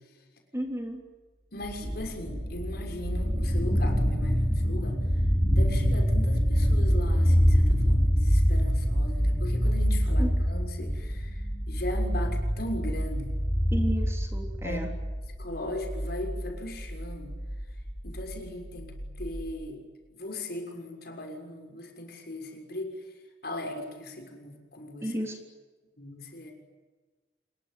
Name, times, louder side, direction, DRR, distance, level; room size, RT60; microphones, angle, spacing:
voice 1, 0.5-1.0 10.2-10.3 13.7-14.9 25.0-25.4, right 1 dB, 15° right, 2 dB, 3.5 m, -32 dB
voice 2, 1.5-5.2 5.5-13.4 14.6-14.8 15.4-17.3 18.0-18.9 19.2-19.8 20.1-23.1 23.4-25.1 26.0-26.5, left 1 dB, 55° left, 3 dB, 6.5 m, -38 dB
sound 1, 1.6-19.5, equal, ahead, 5.7 m, -26 dB
27.5 x 22.5 x 9.5 m, 1.3 s
head